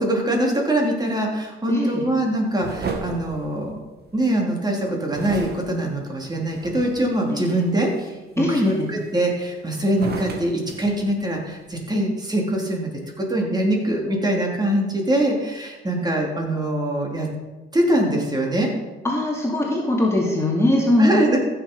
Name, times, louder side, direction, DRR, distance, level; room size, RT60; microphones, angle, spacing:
voice 1, 0.0-3.8 4.1-8.1 8.4-12.9 13.2-17.3 17.7-18.7 21.0-21.4, right 1 dB, 20° right, -1 dB, 3.4 m, -23 dB
voice 2, 1.7-2.1 7.3-7.6 8.4-8.9 19.0-21.4, left 1 dB, 15° left, -2 dB, 2.5 m, -21 dB
sound 1, 2.6-4.2 5.1-7.2 7.7-8.1 8.6-9.5 9.9-11.8, right 4 dB, 55° right, 2.1 m, -34 dB
15.0 x 6.9 x 5.4 m, 1.1 s
cardioid pair, 90°, 20 cm